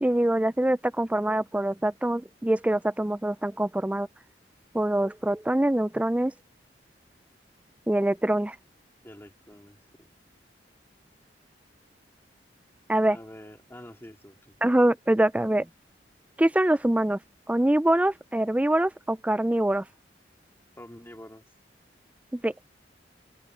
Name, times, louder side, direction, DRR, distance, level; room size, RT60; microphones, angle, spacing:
voice 1, 0.0-4.1 4.7-6.3 7.9-8.6 12.9-13.2 14.6-15.7 16.4-17.2 17.5-19.8 22.3-22.5, right 1 dB, 10° right, 0.4 m, -24 dB
voice 2, 9.0-10.1 13.1-14.6 20.8-21.4, left 1 dB, 15° left, 2.5 m, -47 dB
open air
head